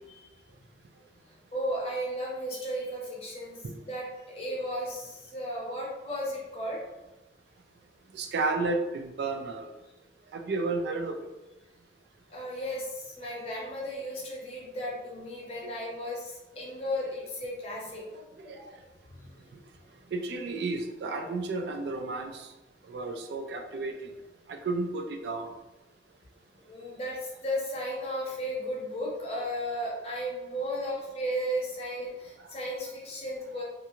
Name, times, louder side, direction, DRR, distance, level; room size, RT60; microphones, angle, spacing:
voice 1, 1.5-6.8 12.3-18.0 18.6-18.7 19.1-19.4 19.9-20.1 26.6-33.6, equal, 35° left, -4 dB, 0.7 m, -35 dB
voice 2, 8.1-9.7 10.3-11.2 15.6-15.7 16.6-16.7 18.0-18.6 20.1-22.5 22.9-23.9 24.5-25.5, right 3 dB, 70° right, 5 dB, 0.3 m, -32 dB
2.5 x 2.4 x 2.8 m, 1.0 s
head